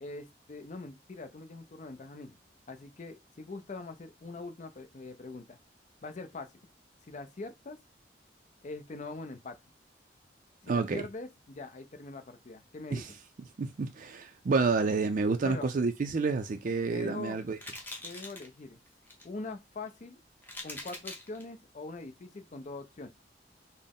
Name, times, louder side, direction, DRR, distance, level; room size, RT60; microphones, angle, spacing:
voice 1, 0.0-2.4 2.7-5.6 6.0-6.5 7.1-7.8 8.6-9.6 10.6-13.1 15.4-15.7 16.9-17.4 18.0-18.8 19.2-20.2 20.6-23.1, left 3 dB, 45° left, 0.5 m, -43 dB
voice 2, 10.7-11.0 12.9-13.1 13.6-17.6, right 4 dB, 45° right, 0.4 m, -29 dB
sound 1, 16.6-16.9 17.6-18.5 18.9-19.3 19.9-20.0 20.4-21.4, left 2 dB, 10° left, 0.8 m, -43 dB
4.0 x 2.1 x 3.6 m
head